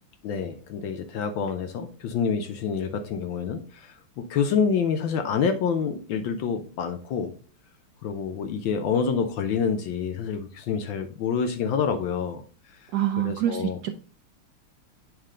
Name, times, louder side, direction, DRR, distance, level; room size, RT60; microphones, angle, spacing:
voice 1, 0.2-7.3 8.0-12.4 13.2-13.8, left 6 dB, 70° left, 1.3 m, -27 dB
voice 2, 12.9-13.9, right 12 dB, 75° right, 0.9 m, -26 dB
8.7 x 3.5 x 3.7 m
omnidirectional pair, 2.3 m